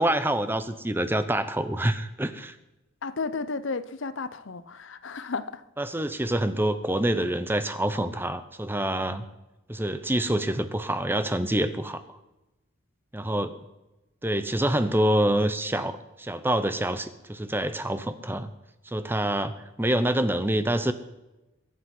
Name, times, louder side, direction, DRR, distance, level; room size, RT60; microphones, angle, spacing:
voice 1, 0.0-2.6 5.8-9.2 9.7-12.2 13.1-13.5 14.2-18.5 18.9-19.5 19.8-20.9, right 1 dB, 10° right, 0.7 m, -26 dB
voice 2, 3.0-5.6, left 4 dB, 60° left, 0.6 m, -33 dB
22.5 x 8.4 x 6.0 m
head